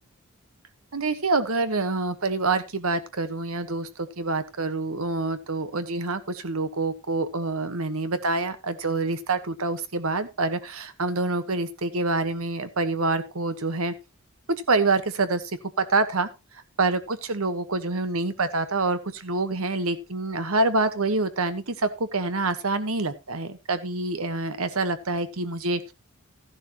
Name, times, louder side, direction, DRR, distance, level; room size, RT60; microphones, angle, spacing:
voice 1, 0.9-13.9 14.5-15.4 15.8-16.3 16.8-25.8, right 3 dB, 75° right, 11 dB, 1.3 m, -26 dB
13.5 x 11.0 x 3.0 m, 0.25 s
head